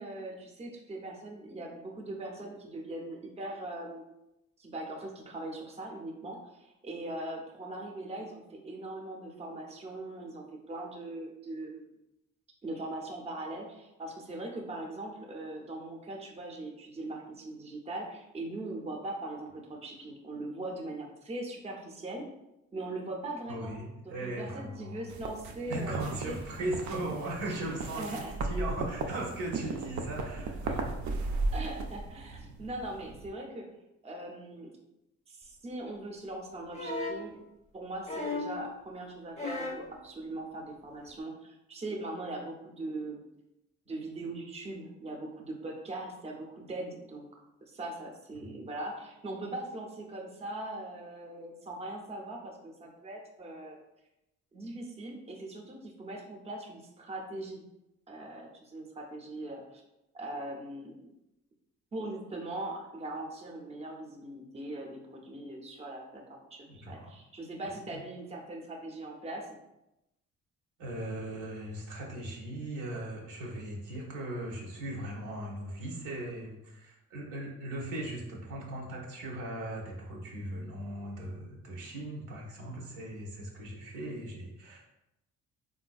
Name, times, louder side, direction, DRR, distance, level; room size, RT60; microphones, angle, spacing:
voice 1, 0.0-4.0 4.6-11.9 12.6-22.2 22.7-23.7 24.0-26.0 26.2-26.4 28.0-28.3 31.5-33.7 34.0-34.7 35.3-37.4 37.7-43.2 43.9-47.3 47.6-53.8 54.5-57.6 58.1-59.8 60.1-61.0 61.9-69.5, right 2 dB, 20° right, 0 dB, 0.6 m, -40 dB
voice 2, 23.5-25.1 25.7-31.0 48.3-48.6 66.7-67.1 67.9-68.0 70.8-84.9, right 1 dB, 85° right, -2 dB, 0.9 m, -38 dB
sound 1, 25.1-33.3, right 3 dB, 70° right, 0.5 m, -36 dB
sound 2, 36.7-37.3 38.1-38.6 39.4-39.9 41.1-41.2, left 3 dB, 20° left, 0.6 m, -35 dB
3.7 x 2.5 x 2.3 m, 0.90 s
cardioid pair, 90°, 30 cm